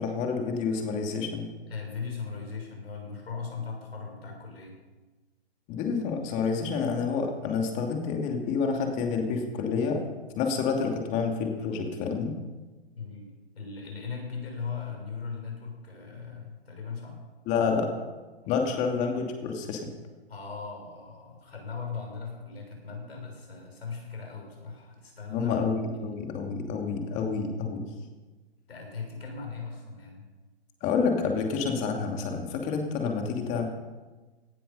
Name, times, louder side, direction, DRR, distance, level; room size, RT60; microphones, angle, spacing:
voice 1, 0.0-1.5 5.7-10.0 10.4-12.4 17.5-17.9 18.5-19.8 25.3-27.8 30.8-33.6, left 5 dB, 25° left, 3 dB, 2.4 m, -28 dB
voice 2, 1.7-4.8 12.9-13.3 13.5-17.2 18.4-18.7 20.3-25.5 25.9-26.2 28.7-30.3, left 5 dB, 75° left, 1 dB, 6.4 m, -38 dB
18.0 x 12.5 x 5.5 m, 1.3 s
hypercardioid pair, 145°, 31 cm